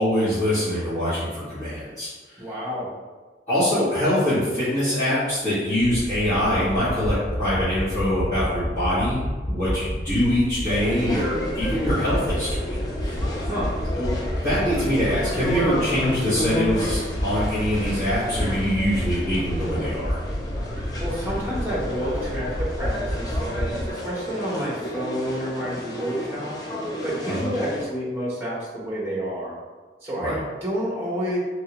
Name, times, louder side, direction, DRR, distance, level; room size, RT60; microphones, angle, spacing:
voice 1, 0.0-2.4 3.5-9.2 9.5-13.2 14.0-14.1 14.4-20.2 27.3-27.5 30.2-30.3, equal, 40° left, -16 dB, 1.4 m, -24 dB
voice 2, 2.4-2.9 13.3-13.8 21.0-26.6 27.0-29.6 30.0-31.4, equal, 15° right, -6 dB, 0.8 m, -29 dB
sound 1, 5.8-23.9, equal, 85° left, 0.8 m, -30 dB
sound 2, 10.7-27.9, left 1 dB, 20° left, 0.4 m, -32 dB
3.2 x 2.7 x 2.9 m, 1.3 s
head